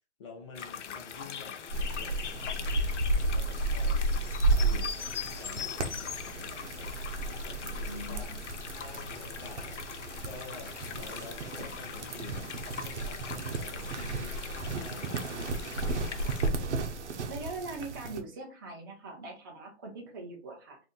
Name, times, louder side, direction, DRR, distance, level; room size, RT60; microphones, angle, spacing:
voice 1, 0.2-4.0 4.6-6.9 7.3-8.3 8.7-9.8 10.3-14.4 14.8-15.5 16.4-16.8, left 5 dB, 25° left, 0.6 m, -49 dB
sound 1, 0.5-16.5, left 7 dB, 80° left, 0.6 m, -41 dB
sound 2, 1.7-18.2, right 2 dB, 75° right, 0.8 m, -33 dB
voice 2, 7.6-8.4 16.1-16.3 17.3-20.8, right 2 dB, 20° right, 0.4 m, -42 dB
2.6 x 2.5 x 3.8 m
hypercardioid pair, 155°, 35 cm